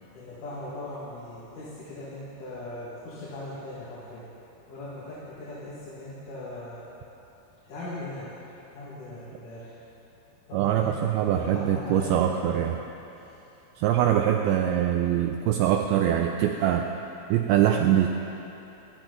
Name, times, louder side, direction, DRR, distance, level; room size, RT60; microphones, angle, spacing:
voice 1, 0.1-4.3 4.7-6.8 7.7-8.3 8.7-9.8 10.5-10.9 11.3-12.7 13.1-13.3, left 2 dB, 55° left, -9 dB, 3.1 m, -39 dB
voice 2, 10.5-12.8 13.8-16.9 17.3-18.1, right 10 dB, 85° right, 3 dB, 2.2 m, -23 dB
18.0 x 13.0 x 3.9 m, 2.9 s
omnidirectional pair, 4.9 m